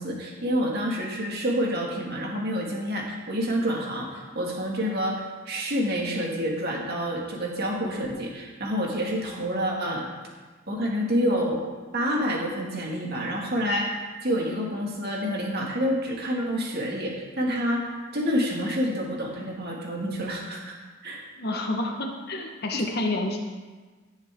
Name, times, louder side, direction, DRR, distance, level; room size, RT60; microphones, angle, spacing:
voice 1, 0.0-10.1 10.7-11.6 11.9-20.8 21.0-21.2 22.7-22.8, equal, 50° right, -1 dB, 2.3 m, -28 dB
voice 2, 21.3-23.4, left 2 dB, 55° left, 1 dB, 1.5 m, -29 dB
17.5 x 7.1 x 3.8 m, 1.4 s
head